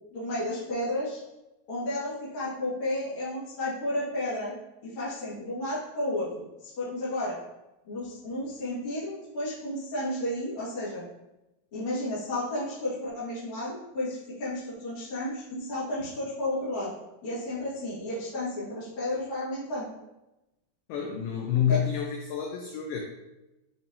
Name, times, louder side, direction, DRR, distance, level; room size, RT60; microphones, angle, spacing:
voice 1, 0.1-1.2 1.7-4.5 4.8-6.4 6.8-7.4 7.9-11.0 11.7-16.9 17.2-19.9 21.7-21.8, left 1 dB, 70° left, -10 dB, 1.2 m, -32 dB
voice 2, 20.9-23.0, left 9 dB, 85° left, 0 dB, 2.1 m, -28 dB
6.9 x 2.5 x 2.8 m, 0.97 s
omnidirectional pair, 4.9 m